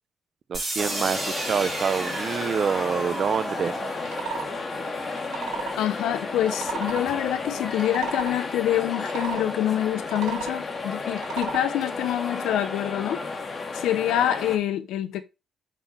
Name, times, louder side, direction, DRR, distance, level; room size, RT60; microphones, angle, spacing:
sound 1, 0.5-6.5, right 2 dB, 20° right, 4.2 m, -34 dB
voice 1, 0.5-3.8, right 7 dB, 50° right, 0.5 m, -27 dB
sound 2, 0.8-14.6, left 3 dB, 35° left, 1.9 m, -33 dB
sound 3, 4.1-4.5 5.1-5.8 6.4-7.0 7.7-8.3 9.0-9.4 10.0-10.6 11.1-11.6, right 7 dB, 85° right, 1.9 m, -33 dB
voice 2, 5.8-13.2 13.7-15.2, left 11 dB, 85° left, 0.8 m, -26 dB
6.0 x 5.8 x 4.4 m
cardioid pair, 90°, 0 cm